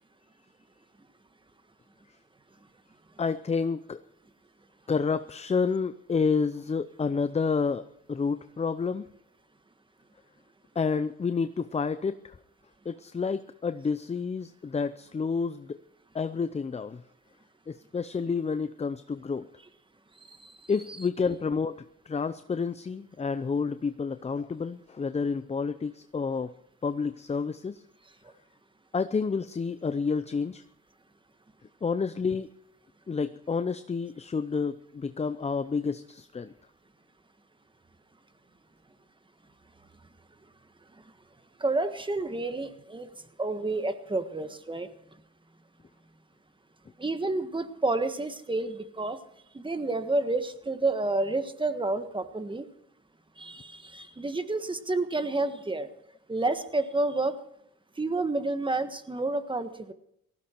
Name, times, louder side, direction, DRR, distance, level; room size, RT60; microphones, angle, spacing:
voice 1, 3.2-4.0 4.9-7.8 8.1-9.1 10.8-12.3 12.9-15.8 16.1-17.0 17.7-19.5 20.7-26.5 26.8-27.8 28.9-30.6 31.8-32.5 33.1-36.5, left 5 dB, 20° left, 12 dB, 0.6 m, -29 dB
voice 2, 20.3-20.7 41.6-43.1 43.4-44.9 47.0-49.2 49.5-52.7 53.4-55.9 56.3-57.4 58.0-59.9, right 2 dB, 15° right, 10 dB, 1.5 m, -29 dB
18.0 x 15.0 x 4.5 m, 0.76 s
cardioid pair, 90°, 30 cm